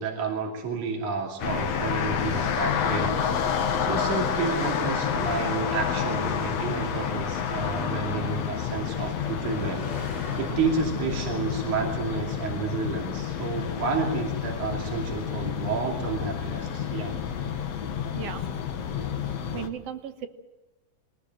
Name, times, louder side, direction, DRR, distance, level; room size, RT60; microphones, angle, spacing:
voice 1, 0.0-3.4 3.8-17.2, right 5 dB, 75° right, 1 dB, 4.2 m, -31 dB
sound 1, 1.4-19.7, left 7 dB, 60° left, 2.5 m, -29 dB
Car passing by, 4.7-18.3, left 3 dB, 45° left, 3.9 m, -47 dB
voice 2, 18.1-18.5 19.5-20.3, right 8 dB, 60° right, 9 dB, 2.0 m, -36 dB
22.5 x 19.0 x 7.6 m, 1.0 s
omnidirectional pair, 3.5 m